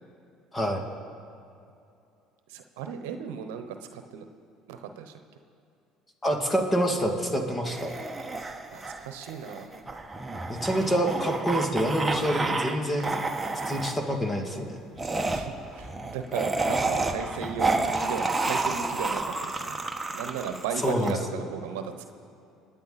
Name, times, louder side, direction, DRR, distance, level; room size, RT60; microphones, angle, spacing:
voice 1, 2.5-4.2 4.7-5.2 8.7-9.7 15.2-19.8 20.1-22.1, right 7 dB, 85° right, 7 dB, 0.9 m, -36 dB
voice 2, 6.2-7.9 10.5-13.2 13.7-14.8 20.8-21.4, equal, 15° left, 2 dB, 2.5 m, -27 dB
sound 1, 7.6-12.7 13.0-13.9 15.0-21.1, right 3 dB, 15° right, 1.4 m, -30 dB
28.0 x 9.6 x 4.2 m, 2.6 s
supercardioid pair, 80°, 0 cm